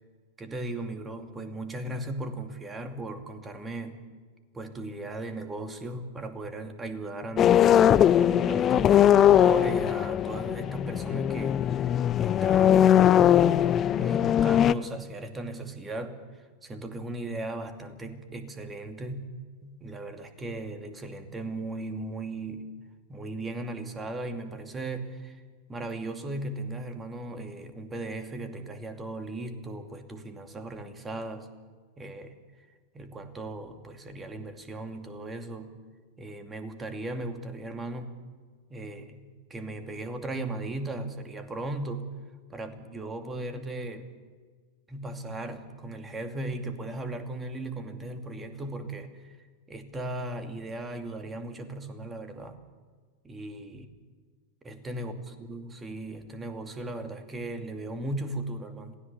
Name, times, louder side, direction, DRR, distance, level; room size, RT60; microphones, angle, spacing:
voice 1, 0.4-4.0 4.5-7.9 8.4-13.0 13.9-19.3 19.6-22.7 23.1-25.4 25.7-31.5 32.0-32.3 32.9-35.8 36.2-38.1 38.7-42.1 42.5-44.1 44.9-49.4 49.7-52.6 53.2-53.9 54.6-55.1 55.4-59.0, right 2 dB, 15° right, 7 dB, 2.5 m, -37 dB
sound 1, 7.4-14.7, left 10 dB, 30° left, 0.6 m, -20 dB
27.0 x 17.0 x 7.0 m, 1.5 s
figure-of-eight pair, 90°, 0 cm